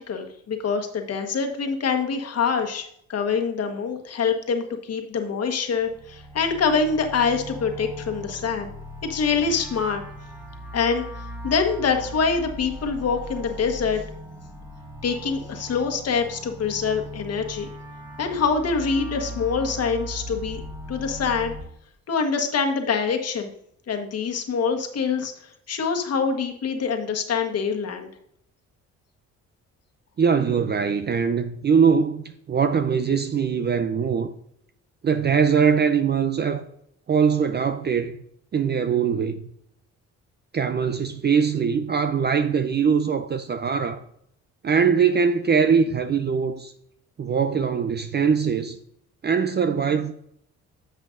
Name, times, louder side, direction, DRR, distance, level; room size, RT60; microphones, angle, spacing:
voice 1, 0.1-8.7 9.0-10.0 10.7-11.0 11.4-14.0 15.0-17.7 18.2-20.6 20.9-21.5 22.1-23.5 23.9-25.3 25.7-28.1, left 5 dB, 55° left, 1.3 m, -25 dB
sound 1, 5.7-21.6, equal, 15° right, 3.6 m, -38 dB
voice 2, 30.2-34.3 35.0-36.6 37.1-38.2 38.5-39.4 40.5-44.0 44.6-46.7 47.2-48.8 49.2-50.1, right 6 dB, 35° right, 0.5 m, -22 dB
10.0 x 7.2 x 2.5 m
cardioid pair, 90°, 30 cm